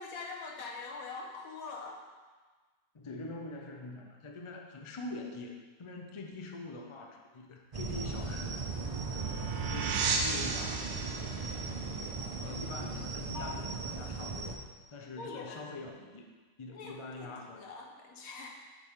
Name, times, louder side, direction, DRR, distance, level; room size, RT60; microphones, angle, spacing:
voice 1, 0.0-2.0 13.3-13.6 15.2-15.6 16.7-18.6, left 4 dB, 75° left, 0 dB, 1.5 m, -43 dB
voice 2, 2.9-10.9 11.3-11.8 12.3-14.6 14.9-16.3 16.6-17.7, left 2 dB, 30° left, 2 dB, 0.5 m, -44 dB
sound 1, 7.7-14.6, right 4 dB, 45° right, 0.4 m, -38 dB
sound 2, 8.4-13.4, right 5 dB, 85° right, 1.3 m, -36 dB
8.4 x 7.1 x 3.7 m, 1.4 s
omnidirectional pair, 1.6 m